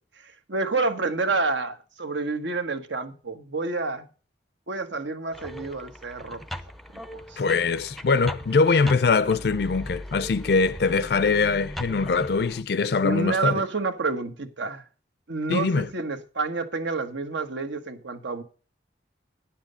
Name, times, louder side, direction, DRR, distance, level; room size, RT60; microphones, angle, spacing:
voice 1, 0.2-4.1 4.7-6.4 6.9-7.0 7.3-7.4 13.0-14.8 15.3-18.4, right 3 dB, 80° right, 1.3 m, -29 dB
sound 1, 5.3-12.6, equal, ahead, 0.5 m, -39 dB
voice 2, 7.4-13.6 15.5-15.9, left 4 dB, 60° left, 0.4 m, -22 dB
9.7 x 7.4 x 5.3 m
head